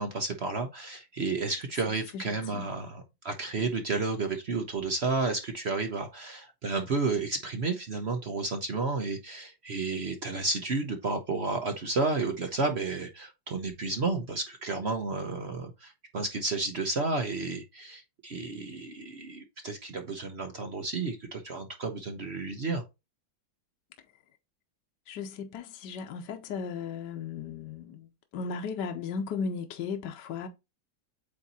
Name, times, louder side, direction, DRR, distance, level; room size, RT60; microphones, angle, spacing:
voice 1, 0.0-22.8, right 3 dB, 65° right, 0.6 m, -32 dB
voice 2, 2.1-2.6 25.1-30.5, left 5 dB, 65° left, 1.3 m, -36 dB
8.4 x 2.8 x 4.1 m
omnidirectional pair, 2.3 m